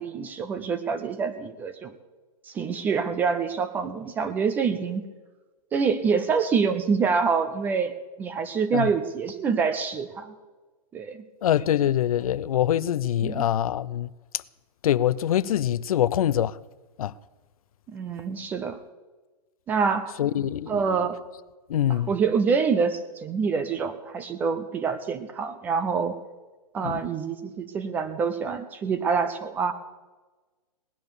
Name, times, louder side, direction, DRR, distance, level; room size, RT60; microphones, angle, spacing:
voice 1, 0.0-1.9 2.4-5.0 5.7-7.9 8.2-10.3 10.9-11.2 13.2-13.4 17.9-18.8 19.7-20.2 20.7-21.2 21.9-26.1 26.7-29.7, right 5 dB, 10° right, 0.4 m, -26 dB
voice 2, 11.4-14.1 14.8-16.6 17.0-17.1 20.2-20.8 21.7-22.1 26.8-27.0, left 11 dB, 65° left, 0.6 m, -24 dB
18.0 x 11.0 x 6.9 m
hypercardioid pair, 165°, 20 cm